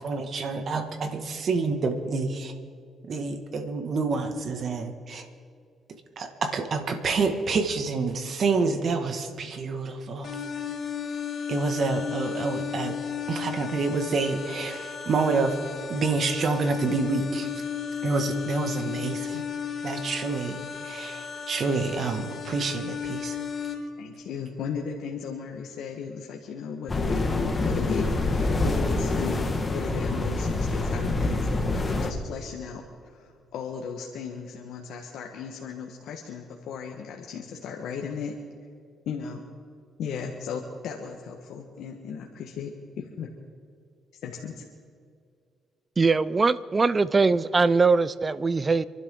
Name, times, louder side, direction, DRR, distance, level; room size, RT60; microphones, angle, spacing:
voice 1, 0.0-2.5 3.0-5.3 6.2-10.4 11.5-13.0 13.3-15.6 15.9-17.5 18.0-19.4 19.8-23.4, right 4 dB, 55° right, 6 dB, 2.0 m, -28 dB
sound 1, 10.2-23.7, left 7 dB, 60° left, 3.3 m, -34 dB
voice 2, 24.0-38.4 39.0-39.4 40.0-43.3 44.2-44.6, left 6 dB, 80° left, 1 dB, 1.5 m, -36 dB
sound 2, 26.9-32.1, left 2 dB, 30° left, 1.8 m, -26 dB
voice 3, 46.0-48.8, right 4 dB, 30° right, 17 dB, 0.6 m, -21 dB
27.0 x 12.0 x 3.9 m, 2.3 s
cardioid pair, 90°, 0 cm